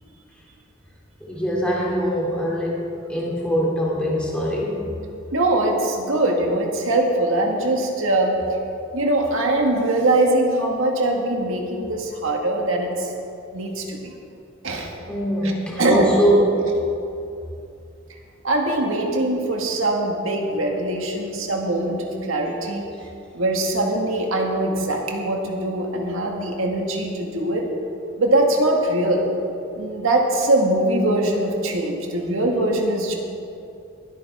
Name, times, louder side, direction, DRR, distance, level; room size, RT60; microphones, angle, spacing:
voice 1, 1.2-4.9 15.1-16.7, equal, 5° left, -5 dB, 2.7 m, -22 dB
voice 2, 5.3-8.4 8.9-13.1 13.5-14.1 14.6-14.9 15.4-15.5 15.8-16.1 18.4-22.9 23.3-27.7 28.2-29.3 29.8-33.2, right 1 dB, 75° right, 1 dB, 1.8 m, -22 dB
21.0 x 8.9 x 3.6 m, 2.6 s
head